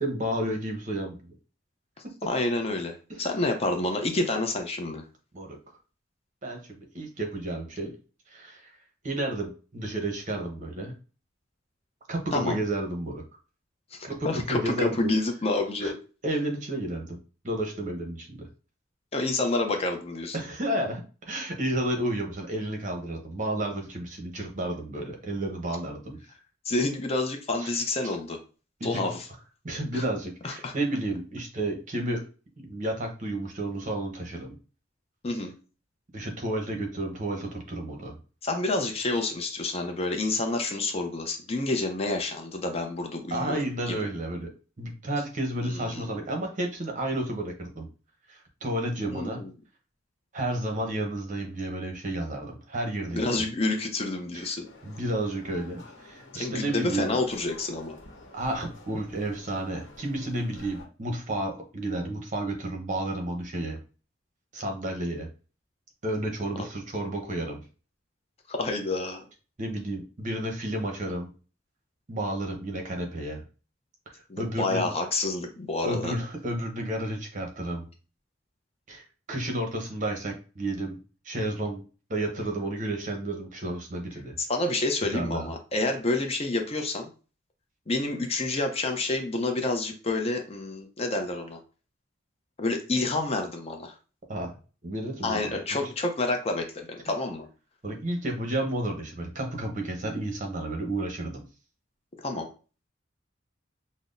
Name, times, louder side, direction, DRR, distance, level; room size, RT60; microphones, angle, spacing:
voice 1, 0.0-1.3 3.1-3.2 5.3-5.6 6.4-7.9 8.3-8.7 9.0-10.9 12.1-13.2 14.0-15.1 15.8-15.9 16.2-17.2 17.4-18.5 20.3-26.2 27.6-27.7 28.0-28.2 28.8-29.1 29.6-32.2 32.6-34.6 36.1-38.2 43.3-44.5 44.8-47.9 48.3-49.4 50.3-53.5 54.3-54.5 54.8-57.2 58.3-63.8 64.5-65.3 66.0-67.6 69.6-71.3 72.1-73.4 74.4-74.9 75.8-77.8 78.9-81.0 81.2-81.8 82.1-84.4 85.0-85.5 94.3-94.5 94.8-95.9 97.8-101.4, right 1 dB, 40° right, 2 dB, 0.8 m, -31 dB
voice 2, 2.3-5.0 12.3-12.6 13.9-14.0 14.2-16.0 19.1-20.4 26.7-28.4 28.8-29.3 29.9-30.0 30.4-30.7 35.2-35.5 38.4-43.6 43.9-44.0 45.6-46.1 49.1-49.5 53.1-54.7 56.3-58.0 68.5-69.3 74.3-76.1 84.4-87.1 87.9-91.6 92.6-93.9 95.2-97.5 102.2-102.5, left 2 dB, 30° left, 4 dB, 0.5 m, -28 dB
sound 1, 54.6-60.9, left 2 dB, 70° left, 1.0 m, -50 dB
5.7 x 2.0 x 2.5 m, 0.36 s
head